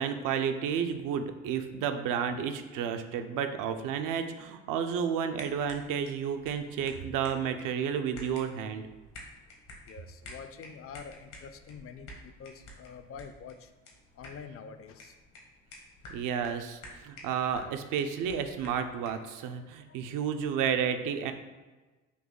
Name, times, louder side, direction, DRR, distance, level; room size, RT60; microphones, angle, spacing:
voice 1, 0.0-8.9 16.1-21.3, right 7 dB, 65° right, 8 dB, 0.5 m, -31 dB
sound 1, 5.3-19.3, left 1 dB, 70° left, 1.1 m, -51 dB
voice 2, 9.8-13.7 14.2-15.2 17.4-17.5 19.6-20.1, left 6 dB, 40° left, 9 dB, 0.5 m, -47 dB
4.0 x 2.7 x 3.7 m, 1.2 s
hypercardioid pair, 60°, 34 cm